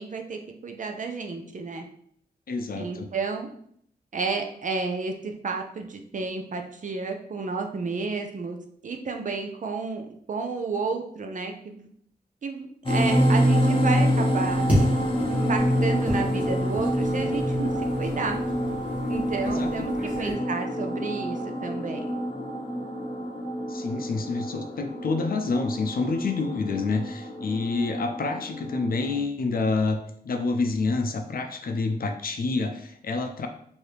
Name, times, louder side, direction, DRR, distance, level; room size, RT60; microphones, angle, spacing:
voice 1, 0.0-1.8 2.8-3.5 4.1-8.6 8.8-10.0 10.3-11.9 12.4-14.6 15.3-17.7 18.0-18.4 19.1-19.9 20.2-22.0, right 4 dB, 50° right, 4 dB, 0.5 m, -31 dB
voice 2, 2.5-3.1 19.4-19.9 23.7-30.0 30.2-33.5, left 3 dB, 65° left, 6 dB, 0.5 m, -28 dB
sound 1, 12.9-29.1, equal, 30° left, 0.8 m, -27 dB
sound 2, 14.4-20.3, equal, 10° right, 1.6 m, -32 dB
4.6 x 2.7 x 3.3 m, 0.66 s
wide cardioid pair, 160°, 16 cm